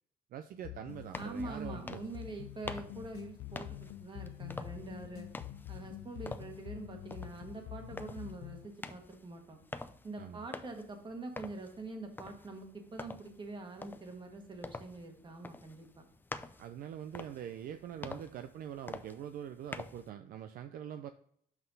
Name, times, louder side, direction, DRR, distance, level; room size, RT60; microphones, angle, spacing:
voice 1, 0.3-2.0 10.2-10.5 16.6-21.1, right 10 dB, 60° right, 9 dB, 0.4 m, -44 dB
sound 1, 0.6-8.7, left 15 dB, 80° left, 0.4 m, -46 dB
sound 2, 0.9-20.1, left 3 dB, 10° left, 0.4 m, -48 dB
voice 2, 1.1-5.3 5.7-9.6 10.0-16.0, right 3 dB, 30° right, 4 dB, 1.5 m, -45 dB
5.9 x 5.5 x 4.0 m, 0.65 s
cardioid pair, 110°, 17 cm